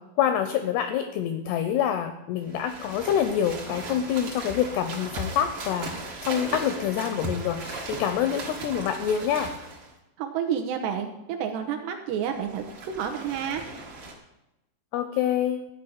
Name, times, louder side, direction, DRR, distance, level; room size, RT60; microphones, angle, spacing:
voice 1, 0.2-9.5 14.9-15.7, left 9 dB, 85° left, 9 dB, 2.3 m, -26 dB
sound 1, 2.4-9.9 12.2-14.1, right 2 dB, 60° right, 1.4 m, -37 dB
voice 2, 10.2-13.6, right 8 dB, 80° right, 3 dB, 2.6 m, -30 dB
13.5 x 5.1 x 8.4 m, 0.92 s
omnidirectional pair, 5.5 m